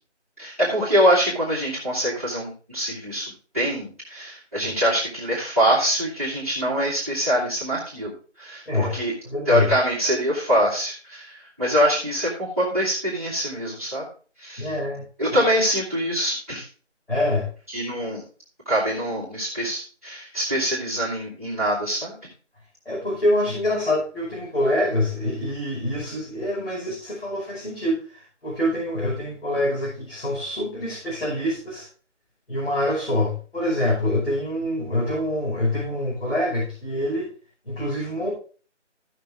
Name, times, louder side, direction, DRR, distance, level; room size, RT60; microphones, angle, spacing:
voice 1, 0.4-9.1 9.4-14.0 14.4-14.7 15.2-16.6 17.7-18.2 18.6-22.1, equal, 10° right, -13 dB, 1.7 m, -24 dB
voice 2, 8.7-9.0 9.2-9.7 14.6-15.0 15.3-15.4 17.1-17.5 22.9-31.9 32.5-37.3 37.7-38.3, left 1 dB, 55° left, -5 dB, 5.5 m, -25 dB
15.5 x 5.9 x 3.5 m, 0.38 s
figure-of-eight pair, 165°, 37 cm